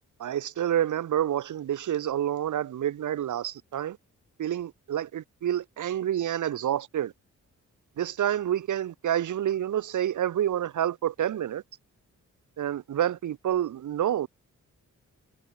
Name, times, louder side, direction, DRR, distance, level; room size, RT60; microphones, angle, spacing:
voice 1, 0.2-4.0 4.4-7.1 8.0-11.6 12.6-14.3, right 11 dB, 70° right, 0.9 m, -28 dB
cardioid pair, 95°, 31 cm